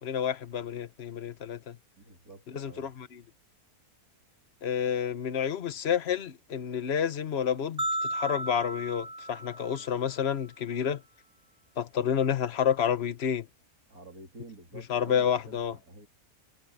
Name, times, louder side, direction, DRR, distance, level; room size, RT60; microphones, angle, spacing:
voice 1, 0.0-1.8 2.5-3.2 4.6-7.8 8.1-11.0 11.8-13.5 14.9-15.7, left 8 dB, 45° left, 1.3 m, -29 dB
voice 2, 2.0-2.9 13.9-16.1, right 3 dB, 75° right, 3.8 m, -49 dB
sound 1, 7.8-10.1, right 1 dB, 5° right, 0.4 m, -34 dB
omnidirectional pair, 1.6 m